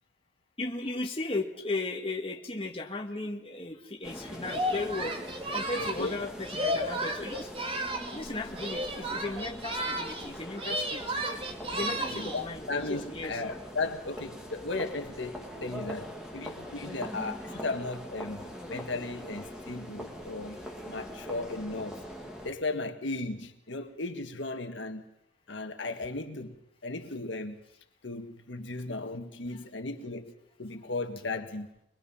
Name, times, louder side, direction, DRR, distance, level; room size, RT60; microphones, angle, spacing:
voice 1, 0.6-5.2 5.5-7.5 8.1-11.2 11.7-12.6 12.9-13.4 16.9-17.0 17.5-17.6 18.7-18.8, left 2 dB, 30° left, 1.8 m, -36 dB
sound 1, 4.0-22.5, equal, 5° right, 2.8 m, -42 dB
Singing, 4.4-8.2 8.5-10.3 10.5-12.4, equal, 30° right, 2.2 m, -33 dB
voice 2, 5.8-6.2 11.7-20.6 20.9-22.0 22.4-25.1 25.5-26.6 26.8-27.6 28.0-30.3 30.6-31.7, left 3 dB, 70° left, 1.6 m, -36 dB
23.5 x 21.0 x 5.7 m
head